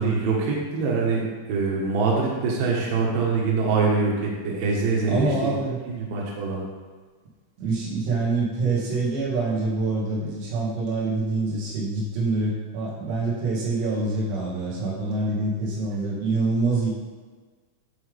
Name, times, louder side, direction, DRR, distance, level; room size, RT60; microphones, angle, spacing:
voice 1, 0.0-5.6 5.9-6.6, right 4 dB, 60° right, -3 dB, 2.5 m, -24 dB
voice 2, 5.1-5.8 7.6-16.9, right 3 dB, 90° right, -6 dB, 4.9 m, -26 dB
12.0 x 5.3 x 3.6 m, 1.4 s
omnidirectional pair, 5.8 m